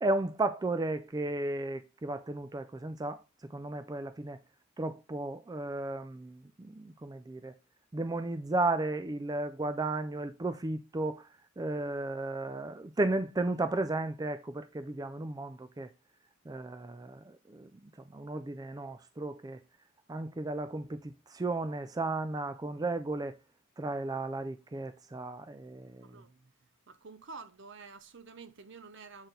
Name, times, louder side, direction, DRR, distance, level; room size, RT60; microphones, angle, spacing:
voice 1, 0.0-3.2 3.5-4.4 4.8-7.5 7.9-11.3 11.6-15.9 16.5-17.8 18.1-19.6 20.1-23.3 23.8-26.1, right 2 dB, 20° right, 0.3 m, -34 dB
voice 2, 26.0-26.5 26.9-29.3, right 4 dB, 60° right, 0.7 m, -49 dB
7.9 x 4.2 x 3.9 m
head